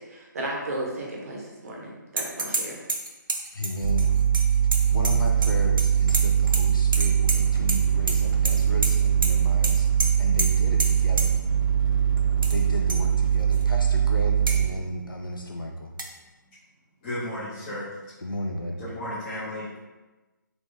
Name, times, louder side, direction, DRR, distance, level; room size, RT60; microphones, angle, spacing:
voice 1, 0.1-2.8, right 1 dB, 45° right, -2 dB, 1.1 m, -34 dB
sound 1, 2.2-2.6 2.9-5.5 5.8-6.6 6.9-7.8 8.1-8.5 8.8-8.9 9.2-9.3 9.6-9.7 10.0-10.1 10.4-10.5 10.8-10.9 11.2-11.3 12.2-12.5 12.9-13.0 13.5-13.6 14.5-14.6 16.0-16.1, right 2 dB, 85° right, 0.7 m, -28 dB
voice 2, 3.5-4.2 4.9-9.9 10.2-11.3 12.5-15.9 18.2-18.8, left 1 dB, 85° left, 2 dB, 0.7 m, -33 dB
sound 2, 3.8-14.7, right 8 dB, 20° right, 1.3 m, -22 dB
voice 3, 17.0-17.9 18.8-19.8, left 1 dB, 20° left, -14 dB, 1.2 m, -34 dB
3.9 x 3.1 x 3.4 m, 1.1 s
figure-of-eight pair, 150°, 11 cm